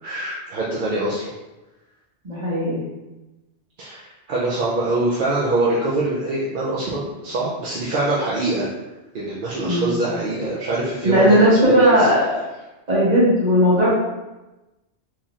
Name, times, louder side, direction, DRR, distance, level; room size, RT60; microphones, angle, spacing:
voice 1, 0.0-1.3 3.8-8.7 9.1-12.1, right 2 dB, 55° right, -6 dB, 0.7 m, -24 dB
voice 2, 2.2-2.8 9.6-10.0 11.0-12.2 12.9-13.9, equal, 40° right, -8 dB, 1.4 m, -16 dB
4.1 x 3.0 x 2.4 m, 1.1 s
omnidirectional pair, 1.1 m